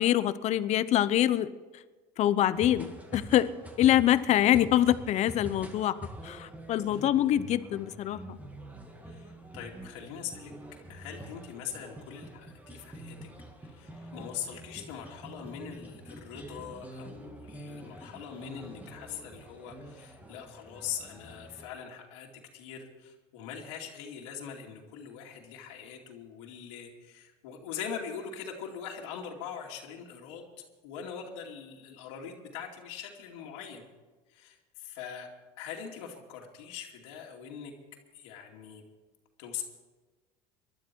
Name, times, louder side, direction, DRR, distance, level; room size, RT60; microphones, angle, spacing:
voice 1, 0.0-1.5 2.2-3.5 3.8-6.0 6.2-8.4, left 12 dB, 50° left, 15 dB, 0.8 m, -25 dB
sound 1, 2.5-21.7, right 1 dB, 10° right, 2.2 m, -46 dB
voice 2, 9.0-10.5 10.9-13.3 13.6-30.4 30.8-33.8 34.3-35.3 35.6-37.7 38.1-38.8 39.4-39.6, left 8 dB, 90° left, -1 dB, 2.5 m, -42 dB
20.5 x 12.0 x 4.6 m, 1.3 s
cardioid pair, 125°, 15 cm